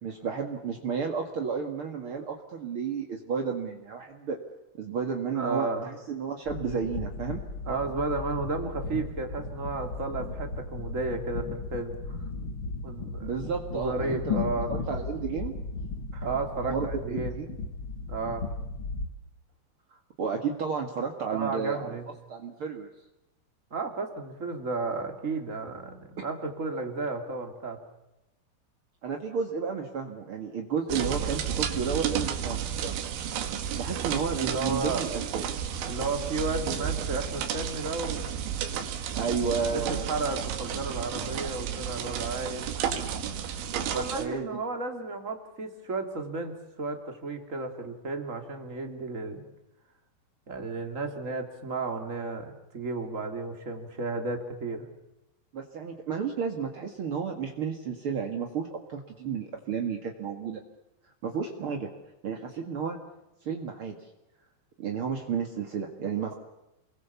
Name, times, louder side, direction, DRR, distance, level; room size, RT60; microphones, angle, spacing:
voice 1, 0.0-4.4 4.8-7.4 13.2-14.4 14.7-15.5 16.7-17.5 20.2-22.0 22.3-22.9 29.0-32.9 33.7-35.4 39.1-40.1 43.7-44.5 55.5-60.6 61.2-61.9 62.2-63.0 63.4-64.1 64.8-66.3, right 6 dB, 55° right, 3 dB, 1.4 m, -32 dB
voice 2, 5.3-5.9 7.6-12.2 12.8-13.3 13.7-14.7 16.1-17.4 18.1-18.5 21.3-22.1 23.7-27.8 34.3-35.1 35.8-38.4 39.7-42.7 43.8-49.4 50.5-54.9, right 3 dB, 20° right, 5 dB, 2.4 m, -33 dB
sound 1, 6.5-19.1, left 4 dB, 65° left, 1.3 m, -36 dB
sound 2, 30.9-44.2, right 9 dB, 80° right, 4.3 m, -32 dB
29.0 x 22.5 x 7.1 m, 0.91 s
omnidirectional pair, 5.4 m